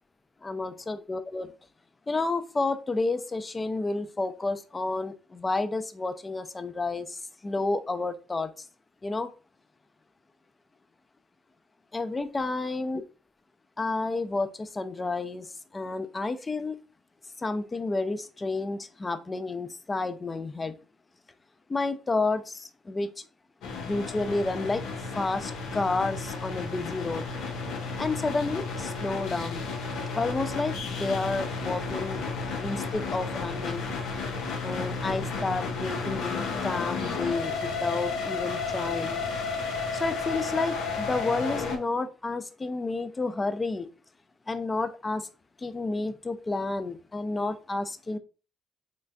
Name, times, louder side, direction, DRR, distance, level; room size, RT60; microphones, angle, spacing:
voice 1, 0.4-1.5 2.1-7.2 7.4-8.5 9.0-9.3 11.9-13.0 13.8-15.5 15.7-16.8 17.4-20.7 21.7-23.1 23.7-24.8 25.1-27.2 28.0-29.6 30.1-32.2 32.6-33.8 34.6-39.2 39.9-43.9 44.5-45.3 45.6-48.2, left 3 dB, 20° left, 10 dB, 0.4 m, -30 dB
sound 1, 23.6-41.8, left 4 dB, 85° left, 0.7 m, -32 dB
3.9 x 3.2 x 2.3 m, 0.35 s
cardioid pair, 110°, 0 cm